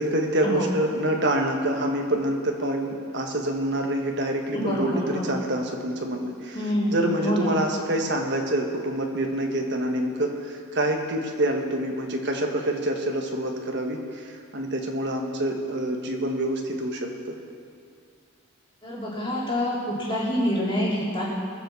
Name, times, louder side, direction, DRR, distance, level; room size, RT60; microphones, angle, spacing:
voice 1, 0.0-6.6 6.9-17.3, right 1 dB, 55° right, 2 dB, 1.6 m, -26 dB
voice 2, 4.5-5.4 6.5-7.5 18.8-21.3, equal, 25° left, -6 dB, 3.4 m, -26 dB
20.5 x 6.8 x 7.1 m, 2.3 s
head